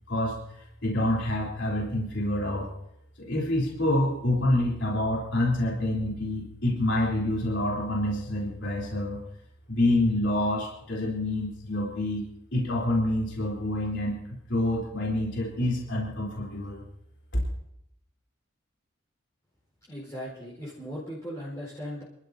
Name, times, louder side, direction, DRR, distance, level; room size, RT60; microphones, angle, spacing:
voice 1, 0.8-2.7 3.2-9.2 9.7-12.3 12.5-14.2 14.5-16.8 17.3-17.4, left 1 dB, 60° left, -3 dB, 3.8 m, -27 dB
voice 2, 19.9-22.0, equal, 15° left, -7 dB, 4.6 m, -38 dB
28.0 x 13.0 x 2.8 m, 0.77 s
head